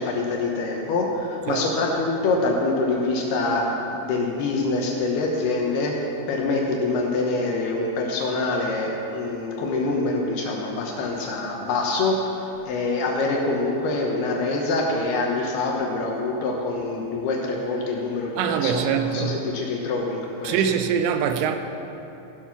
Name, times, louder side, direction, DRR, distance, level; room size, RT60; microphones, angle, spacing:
voice 1, 0.0-6.0 6.3-20.6, left 3 dB, 70° left, 2.6 m, -25 dB
voice 2, 18.4-19.4 20.4-21.6, right 8 dB, 85° right, 3.3 m, -23 dB
16.0 x 7.1 x 5.9 m
omnidirectional pair, 5.6 m